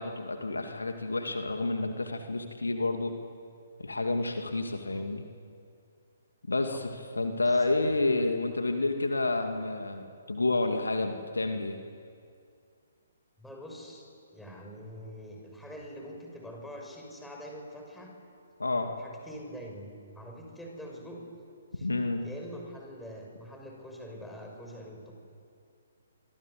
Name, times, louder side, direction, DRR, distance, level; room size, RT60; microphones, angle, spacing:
voice 1, 0.0-3.1 3.8-5.2 6.5-6.9 7.2-11.8 18.6-18.9 21.8-22.2, left 2 dB, 70° left, 5 dB, 2.4 m, -29 dB
voice 2, 7.4-8.0 13.4-18.1 19.0-21.2 21.7-21.9 22.2-25.1, equal, 5° left, 0 dB, 6.1 m, -45 dB
28.0 x 23.0 x 8.3 m, 2.3 s
figure-of-eight pair, 130°, 0 cm